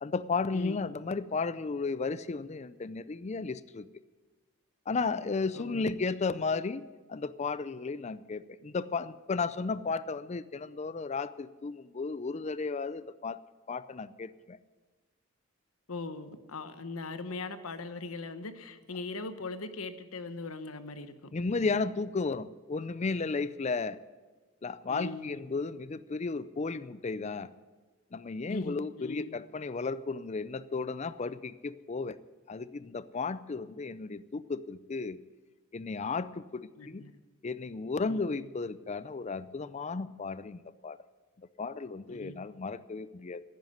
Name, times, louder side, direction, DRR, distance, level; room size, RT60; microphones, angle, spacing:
voice 1, 0.0-3.9 4.9-6.8 7.1-13.4 13.7-14.6 21.3-24.0 24.6-27.5 28.1-32.2 32.5-35.2 35.7-37.0 37.4-41.0 41.4-43.4, left 4 dB, 35° left, 16 dB, 0.4 m, -34 dB
voice 2, 5.5-5.9 15.9-21.1 21.5-21.7 24.9-25.4 28.5-29.4 36.8-37.1 38.0-38.2 42.1-42.5, left 3 dB, 90° left, 11 dB, 1.0 m, -40 dB
10.5 x 9.5 x 9.3 m, 1.3 s
head